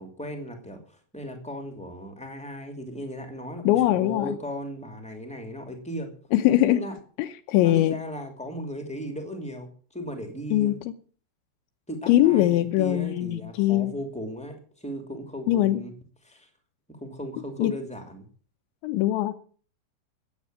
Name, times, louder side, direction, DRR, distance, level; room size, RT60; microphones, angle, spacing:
voice 1, 0.0-6.1 6.5-6.9 7.6-10.8 11.9-15.9 16.2-16.5 17.0-18.2, equal, 5° left, 1.2 m, -37 dB
voice 2, 3.7-4.4 6.3-6.8 7.2-8.0 10.5-10.9 12.1-13.9 15.5-15.8 17.6-17.7 18.8-19.3, left 14 dB, 80° left, 3.1 m, -22 dB
15.0 x 9.3 x 7.5 m
omnidirectional pair, 5.4 m